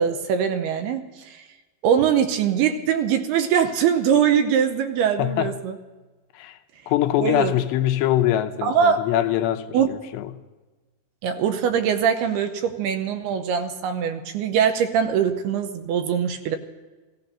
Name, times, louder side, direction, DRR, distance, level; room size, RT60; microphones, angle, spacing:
voice 1, 0.0-1.4 1.8-5.7 7.2-7.5 8.6-9.0 9.7-9.9 11.2-16.6, right 8 dB, 80° right, 2.8 m, -22 dB
voice 2, 5.2-5.6 6.3-6.6 6.9-10.3, left 13 dB, 90° left, 3.0 m, -23 dB
16.5 x 14.0 x 5.7 m
omnidirectional pair, 4.8 m